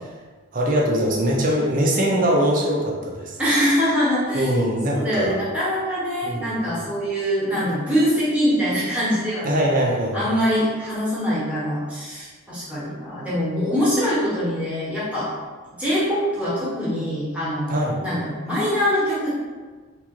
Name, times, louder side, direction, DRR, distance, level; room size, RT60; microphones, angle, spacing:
voice 1, 0.5-3.4 4.3-5.3 6.2-6.6 9.4-10.2 17.7-18.0, right 1 dB, 40° right, -2 dB, 0.5 m, -22 dB
voice 2, 3.4-4.5 4.9-9.6 10.1-15.3 15.8-19.3, equal, 5° right, -10 dB, 1.0 m, -23 dB
2.9 x 2.4 x 2.9 m, 1.4 s
head